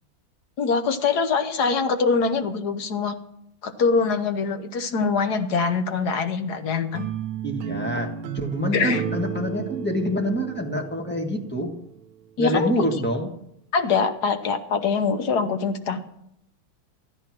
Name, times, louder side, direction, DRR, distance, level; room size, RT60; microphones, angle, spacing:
voice 1, 0.6-3.1 3.6-7.1 8.7-9.0 12.4-12.8 13.7-16.0, left 5 dB, 55° left, 8 dB, 1.5 m, -23 dB
sound 1, 6.9-12.0, right 9 dB, 80° right, 1.5 m, -33 dB
voice 2, 7.4-11.7 12.4-13.3, equal, 5° left, 2 dB, 1.3 m, -26 dB
14.5 x 10.0 x 6.0 m, 0.75 s
omnidirectional pair, 2.3 m